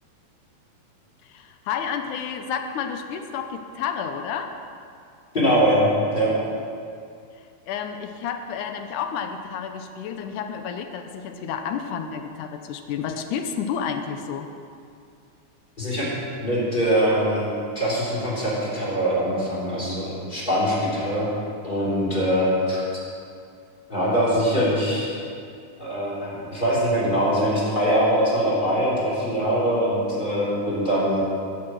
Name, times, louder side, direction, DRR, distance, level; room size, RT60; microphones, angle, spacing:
voice 1, 1.2-4.5 7.7-14.5, left 7 dB, 80° left, 6 dB, 1.9 m, -30 dB
voice 2, 5.3-6.3 15.8-16.1 16.4-17.5 17.7-21.3 21.6-22.8 23.9-25.1 25.8-31.2, equal, 15° left, -7 dB, 3.2 m, -22 dB
14.5 x 8.6 x 5.9 m, 2.4 s
omnidirectional pair, 4.2 m